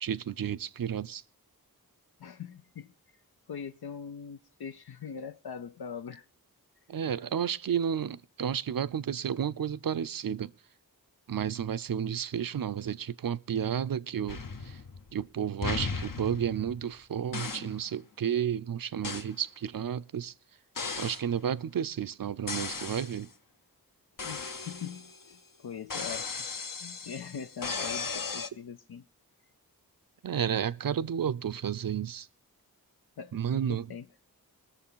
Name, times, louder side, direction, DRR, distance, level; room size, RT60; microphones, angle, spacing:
voice 1, 0.0-1.2 6.9-10.5 11.3-14.8 15.1-20.3 21.0-23.3 30.2-32.3 33.3-33.9, right 8 dB, 65° right, 0.5 m, -32 dB
voice 2, 2.2-2.9 3.5-6.3 24.2-26.3 26.8-29.0 33.2-34.1, left 7 dB, 90° left, 0.6 m, -42 dB
sound 1, 14.3-15.2 15.6-16.9 17.3-17.8 19.0-19.3 20.7-21.3 22.5-23.2 24.2-25.3 25.9-28.5, left 5 dB, 60° left, 0.9 m, -36 dB
20.0 x 6.8 x 5.5 m
wide cardioid pair, 45°, 37 cm